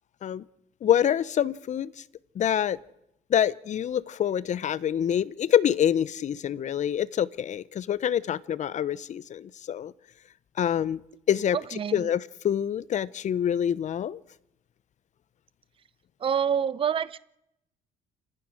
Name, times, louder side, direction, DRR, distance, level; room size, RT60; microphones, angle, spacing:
voice 1, 0.8-1.9 2.4-2.8 3.3-9.9 10.6-11.0 11.3-14.2, left 9 dB, 45° left, 19 dB, 0.8 m, -26 dB
voice 2, 11.7-12.1 16.2-17.2, right 7 dB, 30° right, 17 dB, 0.7 m, -27 dB
29.0 x 14.5 x 6.4 m, 0.84 s
cardioid pair, 110°, 17 cm